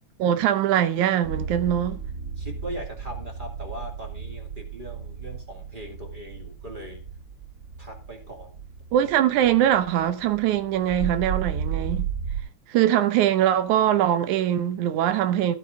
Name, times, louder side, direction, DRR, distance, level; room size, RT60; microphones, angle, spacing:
voice 1, 0.2-2.0 8.9-12.1 12.7-15.6, right 11 dB, 80° right, 2.4 m, -22 dB
sound 1, 1.2-12.4, right 6 dB, 55° right, 0.7 m, -34 dB
voice 2, 2.4-7.0 7.8-8.6 8.9-9.1, equal, 20° right, 2.3 m, -40 dB
14.0 x 9.0 x 3.9 m
omnidirectional pair, 3.4 m